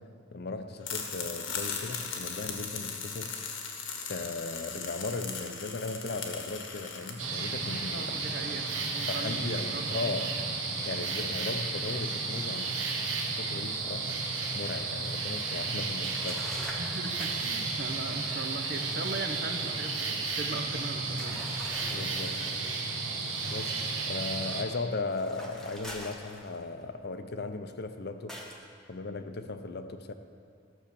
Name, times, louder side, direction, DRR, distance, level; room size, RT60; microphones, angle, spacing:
voice 1, 0.3-3.4 4.1-8.2 9.1-10.3 10.9-12.8 13.2-14.2 14.5-16.5 21.9-22.4 23.5-28.3 28.9-30.1, left 3 dB, 55° left, 8 dB, 0.6 m, -37 dB
sound 1, 0.8-7.1, left 5 dB, 85° left, 1.3 m, -38 dB
sound 2, 7.2-24.6, right 4 dB, 80° right, 1.3 m, -33 dB
voice 2, 7.9-10.2 16.8-21.5, right 2 dB, 55° right, 6 dB, 0.9 m, -39 dB
sound 3, 16.0-17.6 21.2-22.7 25.1-26.8 28.3-28.7, left 1 dB, 5° left, 1.1 m, -44 dB
13.0 x 6.3 x 7.0 m, 2.3 s
head